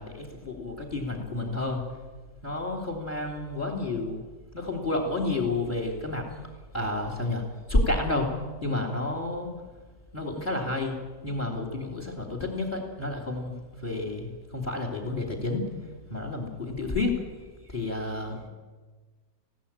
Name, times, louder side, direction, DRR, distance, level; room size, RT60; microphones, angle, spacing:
voice 1, 0.0-1.8 2.4-4.2 4.5-6.2 6.7-7.4 7.7-8.3 8.6-9.5 10.1-13.5 13.8-15.6 16.1-17.1 17.7-18.5, left 2 dB, 30° left, 3 dB, 2.9 m, -30 dB
20.5 x 16.0 x 8.7 m, 1.3 s
omnidirectional pair, 1.8 m